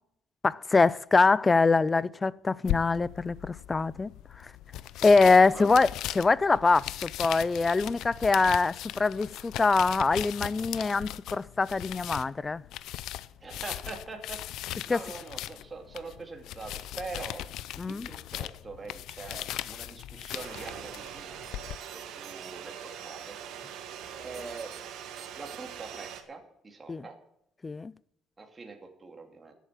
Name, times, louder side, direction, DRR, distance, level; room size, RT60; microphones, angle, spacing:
voice 1, 0.4-4.1 4.4-4.5 5.0-12.6 14.9-15.0 17.8-18.1 26.9-27.1 27.6-27.9, left 4 dB, 20° left, 0.4 m, -24 dB
sound 1, 2.7-21.8, left 13 dB, 75° left, 0.5 m, -38 dB
voice 2, 13.4-14.4 14.9-17.4 17.9-21.4 21.6-23.4 24.2-24.7 25.4-27.2 28.4-29.5, right 3 dB, 20° right, 2.5 m, -43 dB
sound 2, 20.3-26.2, right 9 dB, 80° right, 1.8 m, -42 dB
sound 3, 21.4-22.5 24.3-24.8 25.2-25.6, right 8 dB, 50° right, 2.4 m, -50 dB
13.0 x 8.3 x 7.5 m
cardioid pair, 140°, 0 cm